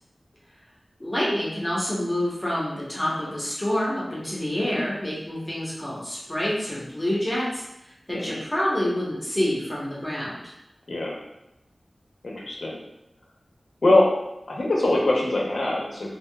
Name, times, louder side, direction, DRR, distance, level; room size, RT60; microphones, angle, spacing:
voice 1, 1.0-10.5, left 1 dB, 20° left, -6 dB, 1.0 m, -27 dB
voice 2, 8.1-8.4 10.9-11.2 12.2-12.8 13.8-14.1 14.5-16.1, left 2 dB, 75° left, -3 dB, 0.7 m, -22 dB
3.4 x 2.4 x 2.3 m, 0.89 s
wide cardioid pair, 55°, 0 cm